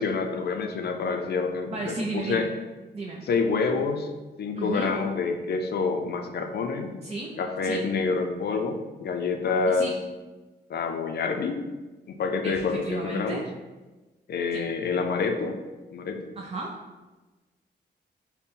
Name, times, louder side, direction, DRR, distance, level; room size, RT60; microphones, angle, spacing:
voice 1, 0.0-2.5 3.3-4.1 4.4-6.9 7.4-9.9 10.7-11.6 12.1-13.4 14.3-15.6 15.9-16.3, left 4 dB, 60° left, 5 dB, 0.4 m, -27 dB
voice 2, 1.7-2.5 2.9-3.3 4.6-4.9 7.0-7.4 7.6-7.8 9.7-9.9 12.4-13.4 14.5-14.6 16.4-16.8, right 3 dB, 35° right, -3 dB, 0.4 m, -33 dB
4.1 x 2.1 x 3.6 m, 1.2 s
wide cardioid pair, 160°, 18 cm